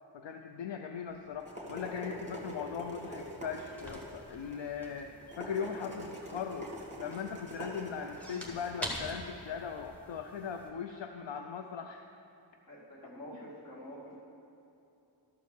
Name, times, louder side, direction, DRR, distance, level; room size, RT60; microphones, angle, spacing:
voice 1, 0.1-6.7 7.0-12.0 13.3-13.4, left 7 dB, 80° left, 5 dB, 0.6 m, -39 dB
sound 1, 1.1-10.0, equal, 15° right, 2.0 m, -45 dB
sound 2, 1.7-10.7, equal, 5° left, 1.4 m, -47 dB
voice 2, 12.7-14.2, equal, 50° left, -5 dB, 2.4 m, -47 dB
12.5 x 4.6 x 7.0 m, 2.8 s
wide cardioid pair, 120°, 44 cm